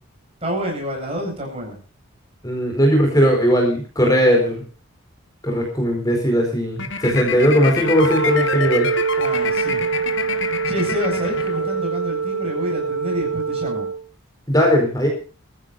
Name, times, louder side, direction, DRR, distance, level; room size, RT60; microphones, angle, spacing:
voice 1, 0.4-1.8 9.2-9.8 10.7-13.9, equal, 25° right, 0 dB, 7.9 m, -28 dB
voice 2, 2.4-4.6 5.4-8.9 14.5-15.1, equal, 15° left, 1 dB, 4.6 m, -18 dB
sound 1, 6.8-12.0, left 5 dB, 55° left, 1.7 m, -28 dB
Wind instrument woodwind instrument, 7.7-14.0, right 5 dB, 75° right, 4.6 m, -24 dB
24.0 x 15.0 x 2.6 m, 0.37 s
head